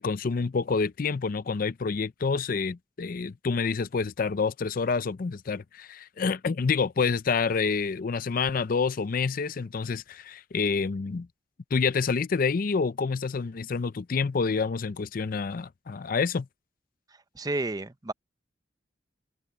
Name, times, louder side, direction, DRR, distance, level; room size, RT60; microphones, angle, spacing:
voice 1, 0.0-11.3 11.7-16.5, left 5 dB, 50° left, 0.5 m, -28 dB
voice 2, 17.3-18.1, right 2 dB, 20° right, 0.6 m, -31 dB
head